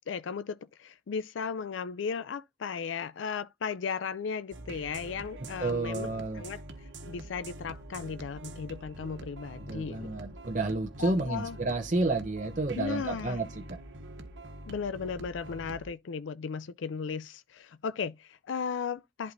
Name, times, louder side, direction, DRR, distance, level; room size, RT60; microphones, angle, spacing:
voice 1, 0.1-6.6 7.1-10.1 11.0-11.6 12.7-13.4 14.7-19.3, left 6 dB, 85° left, 0.4 m, -36 dB
sound 1, 4.5-15.9, right 1 dB, 75° right, 1.2 m, -45 dB
voice 2, 5.6-6.4 9.7-13.5, right 2 dB, 40° right, 0.8 m, -30 dB
11.0 x 4.6 x 2.6 m
head